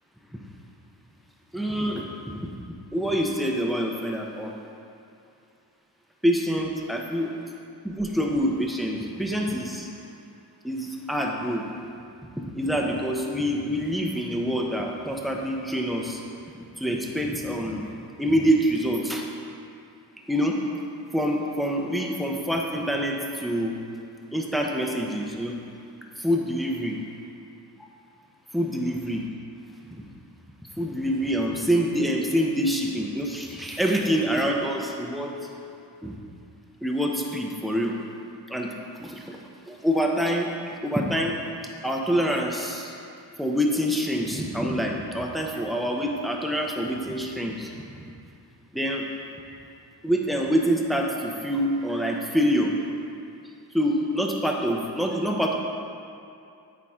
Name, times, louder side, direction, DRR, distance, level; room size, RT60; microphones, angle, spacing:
voice 1, 1.5-2.1 2.5-2.6 2.9-4.5 6.2-7.3 7.8-9.9 10.6-11.6 12.6-16.2 16.8-17.9 18.2-19.2 20.3-20.6 21.1-23.7 24.3-25.5 26.2-27.0 27.8-27.9 28.5-29.2 29.9-30.0 30.8-35.3 36.0-36.2 36.8-38.0 38.5-38.7 39.0-39.4 39.7-40.5 40.8-41.3 41.8-42.9 43.4-48.0 48.7-49.0 50.0-52.7 53.7-55.5, equal, ahead, 0 dB, 0.9 m, -26 dB
9.1 x 4.0 x 3.7 m, 2.5 s
cardioid pair, 60°, 43 cm